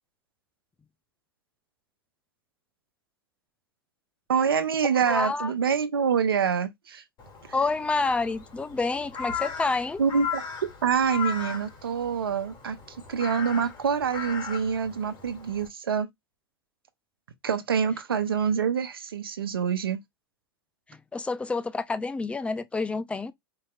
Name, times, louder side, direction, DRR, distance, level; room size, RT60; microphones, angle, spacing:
voice 1, 4.3-7.0 10.0-10.4 10.8-12.8 13.1-16.1 17.4-20.0, right 6 dB, 90° right, 0.7 m, -26 dB
voice 2, 4.8-5.5 7.5-10.0 20.9-23.3, left 3 dB, 10° left, 0.4 m, -28 dB
Crow, 7.2-15.7, left 6 dB, 40° left, 1.8 m, -38 dB
4.9 x 2.8 x 2.4 m
hypercardioid pair, 100°, 12 cm